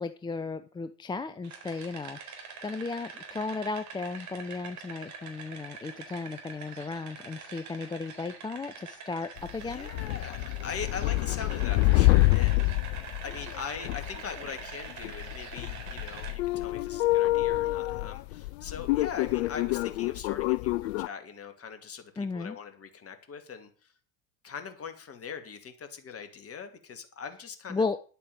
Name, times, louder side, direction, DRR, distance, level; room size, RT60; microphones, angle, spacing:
voice 1, 0.0-2.2 2.6-9.9 22.2-22.6 27.7-28.0, left 4 dB, 10° left, 10 dB, 0.5 m, -35 dB
sound 1, 1.4-16.3, right 5 dB, 40° right, 3.9 m, -45 dB
sound 2, 9.4-21.1, left 20 dB, 55° left, 0.5 m, -27 dB
voice 2, 9.6-12.6 13.2-23.9 24.4-27.9, left 6 dB, 30° left, 8 dB, 2.6 m, -41 dB
10.5 x 8.6 x 6.9 m, 0.41 s
figure-of-eight pair, 75°, 46 cm